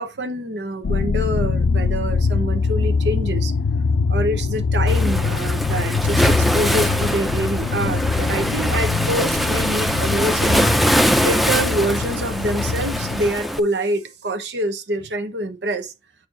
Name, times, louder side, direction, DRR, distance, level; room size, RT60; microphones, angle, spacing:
voice 1, 0.0-3.5 4.1-11.0 11.2-15.9, right 1 dB, 75° right, 1.1 m, -26 dB
sound 1, 0.8-13.3, left 4 dB, 85° left, 0.5 m, -23 dB
Waves surf, 4.9-13.6, equal, ahead, 0.5 m, -22 dB
7.5 x 4.5 x 3.9 m
head